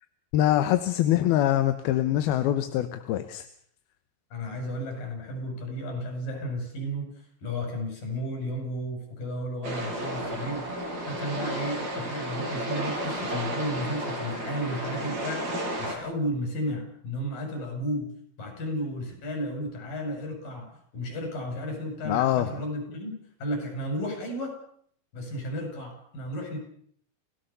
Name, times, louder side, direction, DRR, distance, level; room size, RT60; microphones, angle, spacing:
voice 1, 0.3-3.5 22.1-22.5, left 12 dB, 90° left, 10 dB, 3.0 m, -24 dB
voice 2, 4.3-7.1 7.4-10.7 11.1-15.5 15.8-18.1 18.4-20.7 20.9-23.1 23.4-24.6 25.1-26.6, equal, 65° left, 4 dB, 7.6 m, -33 dB
sound 1, 9.6-16.0, right 1 dB, 75° right, 8.0 m, -32 dB
28.0 x 17.0 x 6.9 m, 0.63 s
omnidirectional pair, 4.3 m